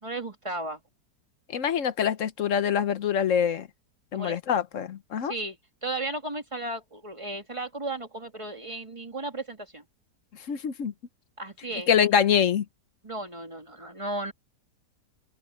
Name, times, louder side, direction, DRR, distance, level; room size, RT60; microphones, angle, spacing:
voice 1, 0.0-0.8 4.1-4.6 5.2-5.6 5.8-9.8 11.4-11.9 13.0-14.3, right 2 dB, 20° right, 2.3 m, -35 dB
voice 2, 1.5-3.7 4.1-5.3 10.5-10.9 11.9-12.6, left 8 dB, 55° left, 1.1 m, -24 dB
open air
omnidirectional pair, 1.8 m